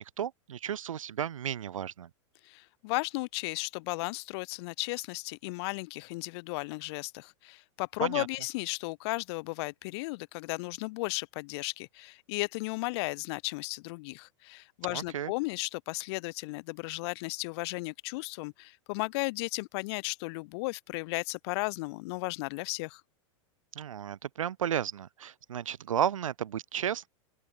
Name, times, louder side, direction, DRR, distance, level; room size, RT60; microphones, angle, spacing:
voice 1, 0.0-2.1 8.0-8.3 14.9-15.3 23.8-27.1, right 9 dB, 90° right, 3.5 m, -33 dB
voice 2, 2.4-23.0, left 25 dB, 55° left, 3.1 m, -35 dB
open air
hypercardioid pair, 130°, 16 cm